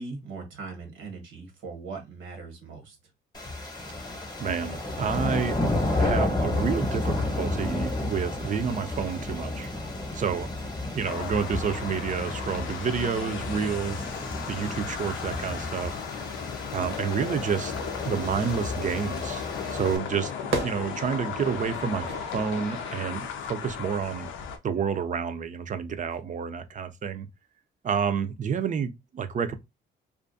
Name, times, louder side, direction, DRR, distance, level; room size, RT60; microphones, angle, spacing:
voice 1, 0.0-3.0, right 4 dB, 90° right, 1.2 m, -40 dB
sound 1, 3.3-20.0, left 2 dB, 20° left, 0.9 m, -32 dB
voice 2, 4.4-5.6 6.0-9.7 10.1-10.5 10.9-14.0 14.5-15.9 16.7-17.7 18.1-19.4 19.7-24.3 24.6-27.3 27.8-29.6, right 7 dB, 40° right, 0.4 m, -29 dB
sound 2, 11.0-24.6, left 7 dB, 85° left, 0.5 m, -36 dB
Fire / Fireworks, 17.8-23.3, right 3 dB, 75° right, 0.8 m, -38 dB
2.5 x 2.3 x 2.5 m
cardioid pair, 90°, 20 cm